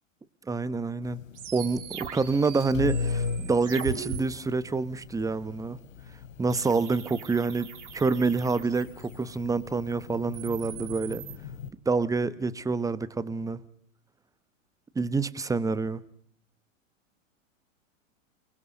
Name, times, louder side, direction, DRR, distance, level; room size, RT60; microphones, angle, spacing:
voice 1, 0.5-1.2 1.5-5.8 6.4-11.2 11.8-13.6 14.9-16.0, right 4 dB, 10° right, 1.1 m, -27 dB
sound 1, 1.0-11.7, left 5 dB, 70° left, 3.3 m, -38 dB
sound 2, 1.4-4.2 6.5-9.3 10.1-11.4, right 8 dB, 60° right, 4.5 m, -40 dB
29.5 x 20.0 x 6.6 m
hypercardioid pair, 115°, 40 cm